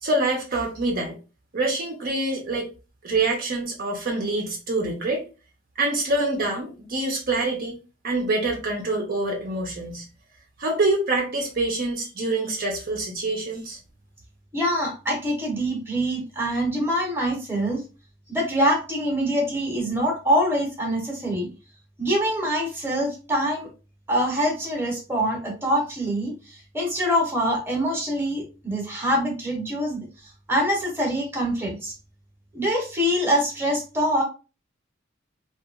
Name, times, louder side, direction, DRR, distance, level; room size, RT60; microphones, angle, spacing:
voice 1, 0.0-1.2 1.5-2.7 3.0-5.2 5.8-7.8 8.0-10.1 10.6-13.8, right 2 dB, 45° right, 1 dB, 0.6 m, -25 dB
voice 2, 14.5-17.8 18.3-21.5 22.0-23.7 24.1-30.1 30.5-31.9 32.5-34.2, equal, 10° right, 0 dB, 0.9 m, -24 dB
2.8 x 2.3 x 2.4 m, 0.32 s
head